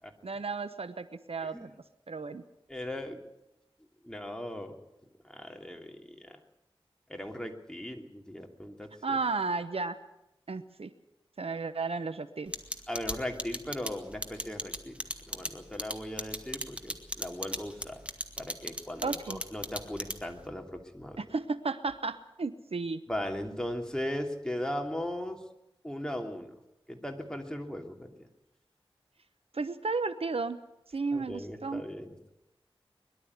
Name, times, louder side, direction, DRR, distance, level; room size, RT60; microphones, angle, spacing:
voice 1, 0.2-1.7 2.1-2.4 9.0-10.0 10.5-10.9 11.4-12.5 19.0-19.4 21.2-23.0 29.5-30.6 30.9-31.8, right 4 dB, 80° right, 12 dB, 1.0 m, -33 dB
voice 2, 2.7-3.2 4.0-4.7 5.2-6.4 7.1-9.2 12.9-15.0 15.3-18.0 18.4-21.2 23.1-25.4 25.8-26.5 26.9-28.3 31.1-32.3, left 1 dB, 5° left, 3 dB, 2.9 m, -38 dB
sound 1, 12.5-20.4, equal, 10° right, 2.1 m, -35 dB
22.0 x 12.0 x 9.5 m, 0.88 s
wide cardioid pair, 45°, 10 cm